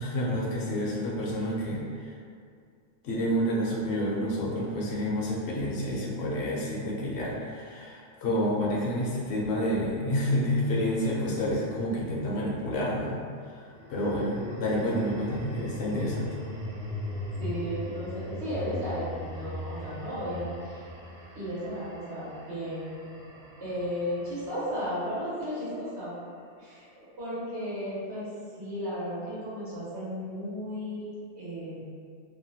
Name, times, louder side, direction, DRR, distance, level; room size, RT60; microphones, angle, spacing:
voice 1, 0.0-2.1 3.0-13.2 13.5-16.4, equal, 65° left, -5 dB, 0.9 m, -29 dB
sound 1, 10.5-12.0 13.6-25.9, equal, 90° right, 0.9 m, -40 dB
voice 2, 17.4-20.8 21.3-22.9 23.6-26.1 26.6-28.3 28.6-31.1 31.4-31.8, equal, 65° right, -10 dB, 1.3 m, -34 dB
2.8 x 2.2 x 2.7 m, 2.2 s
omnidirectional pair, 1.2 m